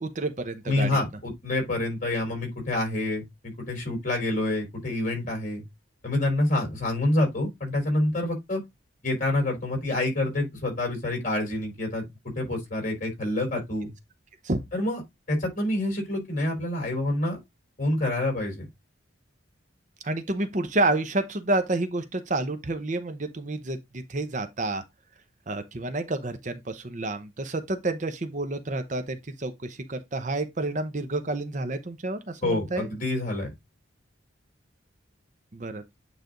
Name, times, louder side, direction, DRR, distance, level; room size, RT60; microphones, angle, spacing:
voice 1, 0.0-0.9 14.4-14.6 20.0-23.8 24.1-24.8 25.5-32.9 35.5-35.8, right 2 dB, 40° right, 0.7 m, -29 dB
voice 2, 0.7-5.6 6.0-8.6 9.0-12.0 12.3-13.9 14.7-15.0 15.3-17.4 17.8-18.6 32.4-33.5, left 1 dB, 40° left, 4.4 m, -27 dB
9.1 x 3.3 x 3.8 m
head